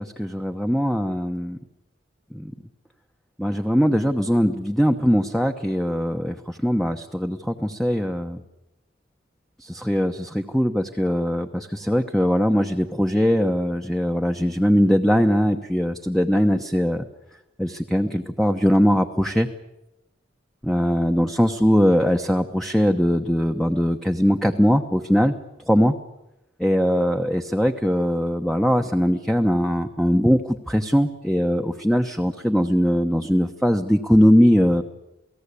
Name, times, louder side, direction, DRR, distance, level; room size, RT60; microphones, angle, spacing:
voice 1, 0.0-1.6 2.3-2.5 3.4-8.4 9.6-17.0 17.6-19.5 20.6-25.3 25.7-25.9 26.6-34.8, equal, ahead, 5 dB, 1.0 m, -21 dB
29.0 x 18.5 x 8.4 m, 0.91 s
head